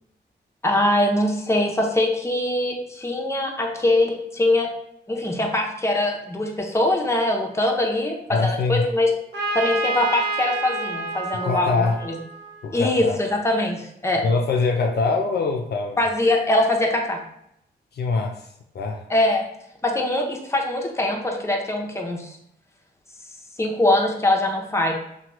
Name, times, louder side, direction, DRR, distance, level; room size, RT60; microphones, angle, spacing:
voice 1, 0.6-4.7 5.1-8.2 8.4-9.1 9.5-12.2 12.7-14.2 16.0-17.2 19.1-19.4 19.8-22.4 23.6-24.9, left 1 dB, 15° left, 1 dB, 0.6 m, -22 dB
voice 2, 8.3-8.8 11.4-12.0 12.6-13.2 14.2-16.0 17.9-18.5 18.7-19.0, left 4 dB, 60° left, 3 dB, 0.4 m, -23 dB
Trumpet, 9.3-13.1, right 3 dB, 65° right, 0.8 m, -29 dB
2.9 x 2.2 x 2.9 m, 0.75 s
cardioid pair, 55°, 19 cm